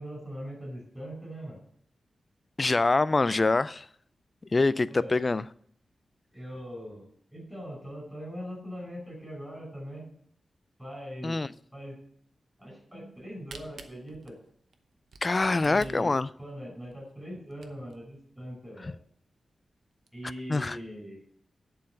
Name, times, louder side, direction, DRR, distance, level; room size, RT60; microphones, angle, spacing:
voice 1, 0.0-1.6 4.9-5.1 6.3-10.1 10.8-11.4 11.7-11.9 12.6-14.4 15.6-18.9 20.1-21.3, equal, ahead, 5.1 m, -41 dB
voice 2, 2.6-3.9 4.5-5.4 11.2-11.5 15.2-16.3 20.5-20.8, left 3 dB, 30° left, 0.3 m, -25 dB
Camera, 13.1-18.1 18.6-18.7 18.9-19.0 19.5-19.6 19.9-20.3, right 4 dB, 85° right, 0.8 m, -50 dB
10.5 x 4.7 x 7.7 m
wide cardioid pair, 120°, 0 cm